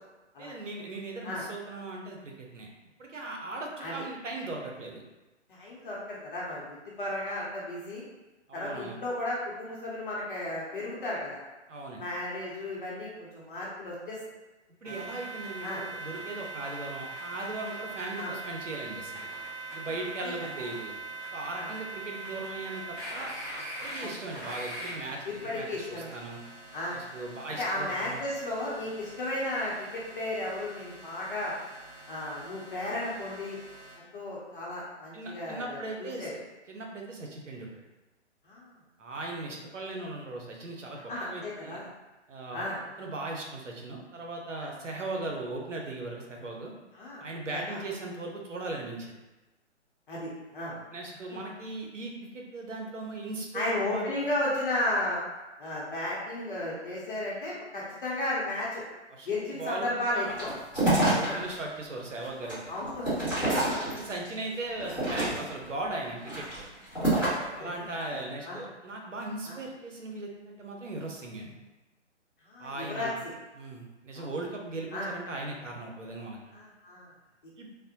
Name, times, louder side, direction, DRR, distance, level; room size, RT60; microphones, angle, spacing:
voice 1, 0.4-2.7 3.0-5.0 8.5-8.9 11.7-12.0 14.8-19.3 19.7-20.9 21.3-23.3 23.8-25.2 25.5-26.4 26.9-28.2 35.1-36.3 36.7-37.7 39.0-41.8 42.3-42.6 43.0-46.7 47.2-49.1 50.9-54.1 59.1-59.3 59.6-59.9 60.1-60.3 60.8-62.6 63.9-66.7 67.5-71.6 72.6-73.1 73.6-76.4 77.6-77.7, right 2 dB, 80° right, 0 dB, 0.8 m, -38 dB
voice 2, 5.5-8.0 8.5-11.4 12.0-14.2 14.8-14.9 15.6-15.8 18.2-18.3 19.7-20.7 21.6-21.7 24.0-24.2 25.2-26.1 26.7-27.0 27.5-31.5 32.1-33.6 34.0-36.3 38.4-38.8 41.1-41.9 42.5-42.8 44.6-44.7 46.9-47.2 47.5-47.8 50.1-50.8 53.5-55.2 55.6-58.8 59.3-60.5 61.2-61.4 62.7-64.1 67.1-67.3 67.6-67.7 68.1-68.6 69.4-69.6 72.4-73.3 74.1-74.3 74.9-75.1 76.5-77.1 77.4-77.5, left 1 dB, 45° left, -5 dB, 0.7 m, -34 dB
sound 1, 14.8-34.0, right 2 dB, 30° right, 1.0 m, -42 dB
sound 2, 60.3-61.5 62.0-64.3 64.8-65.6 66.2-67.5, right 1 dB, 5° right, 1.4 m, -28 dB
3.3 x 2.1 x 2.8 m, 1.1 s
figure-of-eight pair, 135°, 36 cm